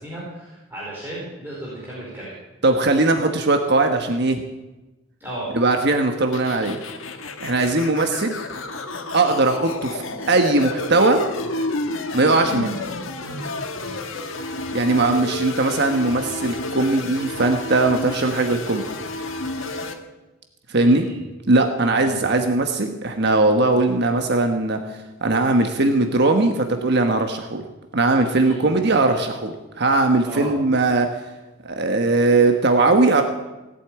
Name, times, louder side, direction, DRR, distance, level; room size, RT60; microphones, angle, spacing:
voice 1, 0.0-2.4 5.2-5.5 20.7-21.2 21.8-22.2 28.4-28.8 30.3-30.5, right 1 dB, 10° right, -7 dB, 4.5 m, -35 dB
voice 2, 2.6-4.4 5.5-6.8 7.4-8.4 9.1-10.0 10.3-11.2 12.1-12.7 14.7-18.8 20.7-21.1 21.5-24.8 25.2-27.6 27.9-31.1 31.6-33.2, right 2 dB, 55° right, 5 dB, 1.3 m, -19 dB
sound 1, 6.3-19.9, left 2 dB, 75° left, 1.7 m, -30 dB
17.5 x 8.5 x 8.8 m, 1.1 s
head